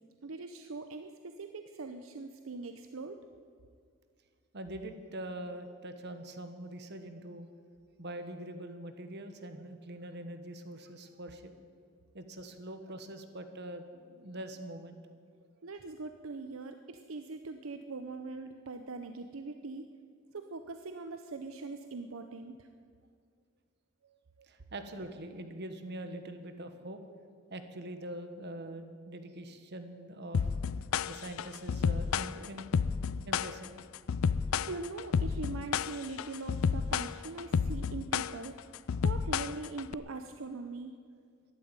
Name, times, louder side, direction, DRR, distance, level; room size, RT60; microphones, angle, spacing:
voice 1, 0.2-3.2 15.6-19.9 20.3-22.7 24.0-24.5 34.5-38.7 39.0-41.0, right 3 dB, 80° right, 7 dB, 0.8 m, -42 dB
voice 2, 4.5-7.5 8.0-11.5 12.1-15.0 24.4-27.0 27.5-30.4 31.1-32.8 33.2-33.7, right 1 dB, 55° right, 8 dB, 1.4 m, -43 dB
sound 1, 30.3-39.9, left 6 dB, 85° left, 0.4 m, -31 dB
12.5 x 11.5 x 9.5 m, 2.2 s
head